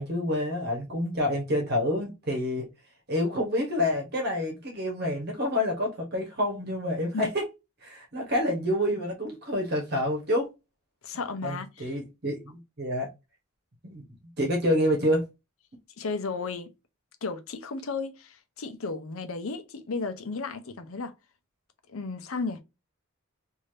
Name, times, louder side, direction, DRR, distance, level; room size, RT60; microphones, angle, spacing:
voice 1, 0.0-2.7 3.1-7.4 7.8-10.5 11.4-13.1 13.8-14.0 14.4-15.2, left 1 dB, 50° right, 1.2 m, -28 dB
voice 2, 11.0-11.9 16.0-16.7 17.2-21.1 21.9-22.6, left 4 dB, 75° left, 0.6 m, -34 dB
3.3 x 2.7 x 2.7 m
head